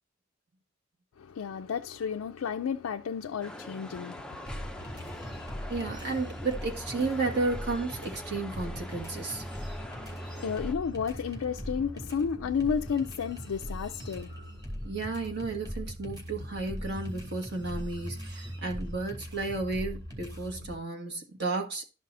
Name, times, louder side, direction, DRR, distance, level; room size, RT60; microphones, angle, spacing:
voice 1, 1.2-5.7 9.8-14.4, left 6 dB, 85° left, 0.4 m, -33 dB
sound 1, 3.4-10.7, left 1 dB, 5° left, 0.4 m, -44 dB
sound 2, 4.5-20.7, equal, 20° right, 2.3 m, -40 dB
voice 2, 5.7-9.4 14.8-21.8, right 3 dB, 50° right, 1.6 m, -33 dB
12.0 x 5.4 x 2.6 m
head